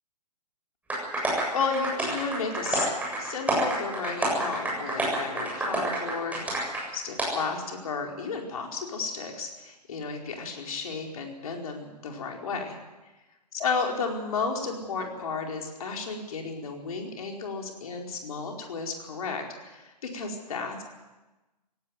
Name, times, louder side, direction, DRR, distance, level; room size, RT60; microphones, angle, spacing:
sound 1, 0.9-6.8 7.2-7.3, right 1 dB, 5° right, 7.6 m, -28 dB
voice 1, 1.2-2.9 3.2-6.4 6.9-12.8 13.5-20.9, left 4 dB, 60° left, 2 dB, 4.7 m, -33 dB
17.5 x 17.0 x 9.5 m, 1.1 s
figure-of-eight pair, 125°, 21 cm